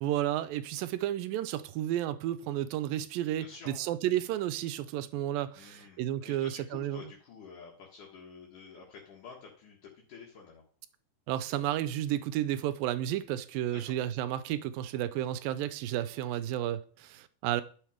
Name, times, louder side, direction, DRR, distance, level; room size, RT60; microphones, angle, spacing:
voice 1, 0.0-7.0 11.3-17.6, right 12 dB, 85° right, 2.4 m, -32 dB
voice 2, 3.4-3.9 5.5-10.6 13.7-14.0, left 5 dB, 65° left, 3.2 m, -50 dB
11.0 x 6.4 x 5.0 m
omnidirectional pair, 4.0 m